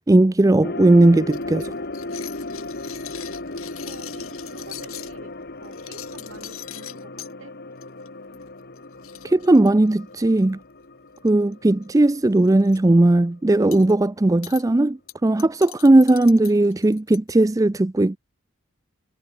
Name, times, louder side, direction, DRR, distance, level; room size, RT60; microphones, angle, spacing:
voice 1, 0.1-1.7 9.2-10.6 11.2-18.2, right 2 dB, 15° right, 0.4 m, -17 dB
sound 1, 0.6-12.9 13.2-13.3, left 2 dB, 50° left, 2.4 m, -35 dB
sound 2, 1.3-5.1 5.6-7.3 7.8-8.1 8.3-8.5 8.8-8.9 9.0-10.4 11.2-11.5 11.8-12.0 12.4-12.8 13.7-13.9 14.4-14.6 15.1-17.3, left 14 dB, 80° left, 4.3 m, -41 dB
voice 2, 3.8-5.3 5.6-7.6 8.3-8.4 11.9-12.3, right 2 dB, 65° right, 5.2 m, -47 dB
head